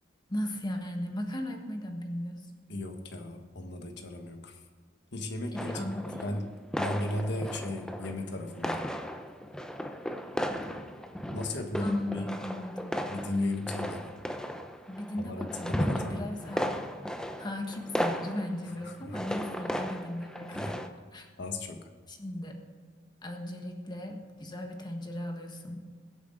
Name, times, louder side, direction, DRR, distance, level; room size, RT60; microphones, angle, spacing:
voice 1, 0.3-2.5 5.5-6.4 11.8-13.1 14.9-16.8 17.4-20.8 21.1-21.3 22.1-22.6 23.2-25.9, left 1 dB, 25° left, 3 dB, 1.5 m, -37 dB
voice 2, 2.7-4.6 5.1-8.9 11.3-12.3 13.1-14.1 15.2-16.3 18.8-19.2 20.5-20.8 21.4-21.9, left 2 dB, 65° left, 5 dB, 1.4 m, -35 dB
sound 1, 5.6-6.5 6.7-8.3 8.5-20.9, equal, 5° left, 0.6 m, -35 dB
21.5 x 8.2 x 3.9 m, 1.5 s
head